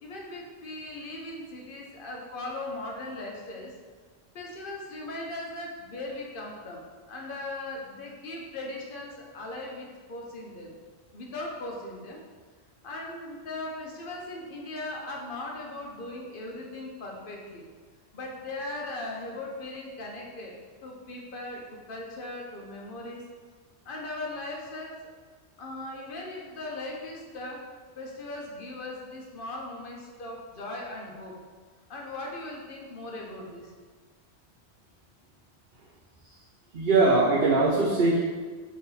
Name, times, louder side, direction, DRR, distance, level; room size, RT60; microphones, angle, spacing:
voice 1, 0.0-3.7 4.3-10.7 11.1-12.2 12.8-17.6 18.1-20.5 20.8-23.2 23.9-25.0 25.6-27.6 28.0-31.3 31.9-33.7, left 2 dB, 60° left, -1 dB, 0.9 m, -38 dB
voice 2, 36.7-38.2, right 3 dB, 60° right, -8 dB, 0.9 m, -21 dB
4.2 x 2.8 x 4.0 m, 1.5 s
omnidirectional pair, 1.1 m